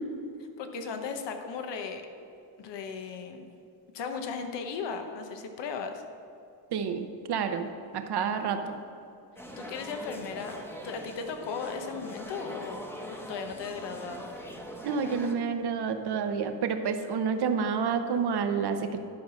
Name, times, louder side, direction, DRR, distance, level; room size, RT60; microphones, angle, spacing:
voice 1, 0.6-2.0 2.6-3.5 3.9-6.0 9.6-10.6 10.8-14.2, left 5 dB, 75° left, 6 dB, 1.1 m, -36 dB
voice 2, 6.7-8.8 14.8-19.0, right 6 dB, 65° right, 7 dB, 0.9 m, -29 dB
sound 1, 9.4-15.3, equal, 5° left, 1.0 m, -42 dB
12.0 x 4.9 x 6.2 m, 2.7 s
cardioid pair, 105°, 43 cm